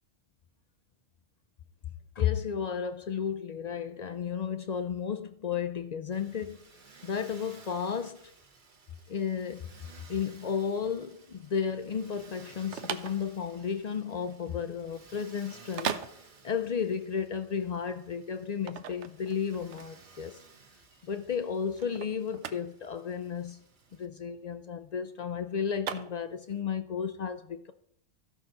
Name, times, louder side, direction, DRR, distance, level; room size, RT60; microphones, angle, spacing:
voice 1, 2.2-6.6 7.0-8.2 9.1-9.7 10.1-16.0 16.4-20.4 21.0-23.6 23.9-27.7, left 7 dB, 70° left, 0.4 m, -33 dB
Motor vehicle (road), 6.1-24.1, right 4 dB, 45° right, 1.1 m, -57 dB
sound 1, 12.4-26.6, right 8 dB, 75° right, 0.9 m, -40 dB
14.0 x 5.8 x 3.8 m
omnidirectional pair, 1.2 m